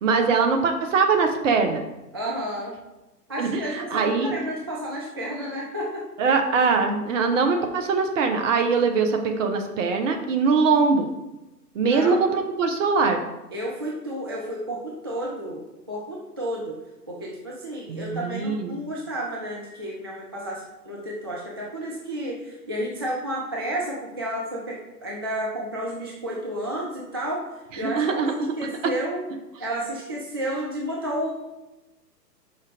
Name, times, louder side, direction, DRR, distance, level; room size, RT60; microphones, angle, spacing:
voice 1, 0.0-1.8 3.4-4.4 6.2-11.1 11.7-13.2 17.9-18.8 27.7-28.5 28.8-28.9, right 4 dB, 50° right, 5 dB, 1.2 m, -22 dB
voice 2, 2.1-2.7 3.3-6.3 11.8-12.3 13.5-16.8 17.1-28.2 28.6-29.2 29.6-31.3, right 1 dB, 20° right, -3 dB, 0.3 m, -31 dB
5.7 x 5.6 x 5.0 m, 1.0 s
figure-of-eight pair, 115°, 49 cm